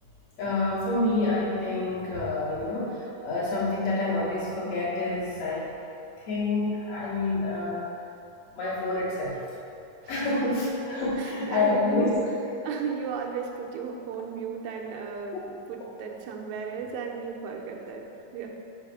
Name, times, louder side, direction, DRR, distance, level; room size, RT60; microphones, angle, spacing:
voice 1, 0.4-5.7 6.2-7.9 8.5-9.4 10.1-12.2, left 2 dB, 65° left, -7 dB, 2.6 m, -28 dB
voice 2, 11.2-12.2 12.6-18.1 18.3-18.5, right 6 dB, 90° right, 0 dB, 2.1 m, -35 dB
5.6 x 4.9 x 6.0 m, 2.7 s
omnidirectional pair, 3.3 m